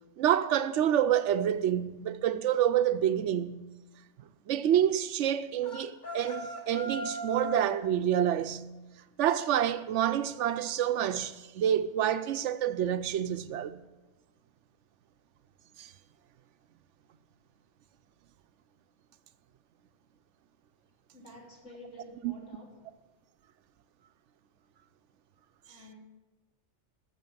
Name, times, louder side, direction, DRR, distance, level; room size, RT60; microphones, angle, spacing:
voice 1, 0.2-3.6 4.5-8.7 9.2-13.8 15.8-15.9 22.2-22.3, right 10 dB, 90° right, 1.0 m, -28 dB
sound 1, 5.6-7.8, left 1 dB, 45° left, 1.5 m, -38 dB
voice 2, 21.1-23.0 25.7-25.9, left 1 dB, 90° left, 3.6 m, -50 dB
14.5 x 6.9 x 9.2 m
omnidirectional pair, 1.2 m